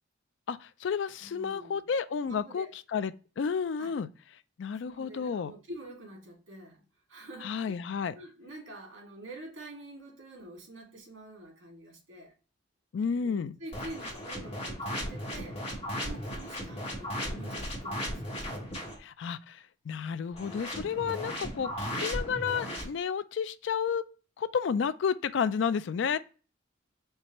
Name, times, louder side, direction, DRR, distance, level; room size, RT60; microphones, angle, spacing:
voice 1, 0.5-4.1 4.6-5.5 7.4-8.1 12.9-13.6 19.0-24.1 24.4-26.2, left 6 dB, 65° left, 0.3 m, -31 dB
voice 2, 1.2-1.8 2.2-2.7 3.8-4.0 4.8-12.3 13.2-18.2 21.4-21.7, right 1 dB, 85° right, 2.0 m, -47 dB
sound 1, 13.7-19.0 20.3-22.8, equal, 30° left, 1.9 m, -36 dB
4.6 x 3.3 x 2.9 m
head